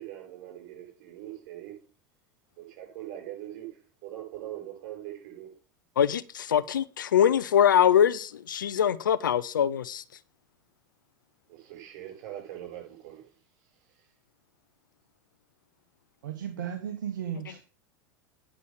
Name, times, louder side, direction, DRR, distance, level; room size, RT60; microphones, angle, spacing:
voice 1, 0.0-1.8 2.6-5.5 11.5-13.4 13.9-14.1, right 12 dB, 60° right, 7.9 m, -42 dB
voice 2, 6.0-10.0, left 9 dB, 85° left, 0.8 m, -23 dB
voice 3, 16.2-17.6, right 9 dB, 75° right, 1.4 m, -35 dB
10.0 x 6.3 x 7.4 m
hypercardioid pair, 90°, 10 cm